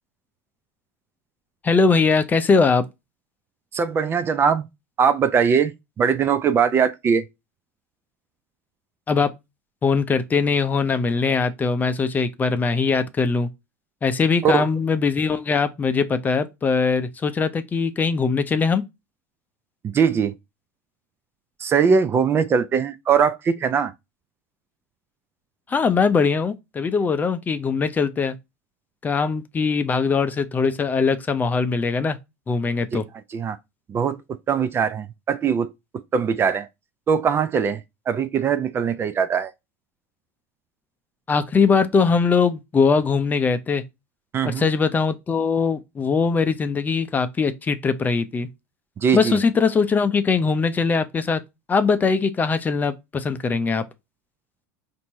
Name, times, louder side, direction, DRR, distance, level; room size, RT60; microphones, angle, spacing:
voice 1, 1.6-2.8 9.1-9.3 9.8-13.5 14.0-18.8 25.7-28.3 29.0-32.2 32.5-33.0 41.3-43.8 44.4-48.5 49.1-51.4 51.7-53.8, left 5 dB, 20° left, 0.6 m, -21 dB
voice 2, 3.7-4.6 5.0-7.2 14.4-14.6 19.8-20.3 21.6-23.9 33.3-33.6 33.9-34.2 34.5-35.7 36.1-36.7 37.1-39.5 44.3-44.7 49.0-49.4, right 6 dB, 30° right, 0.5 m, -21 dB
4.4 x 2.7 x 4.2 m
hypercardioid pair, 95°, 8 cm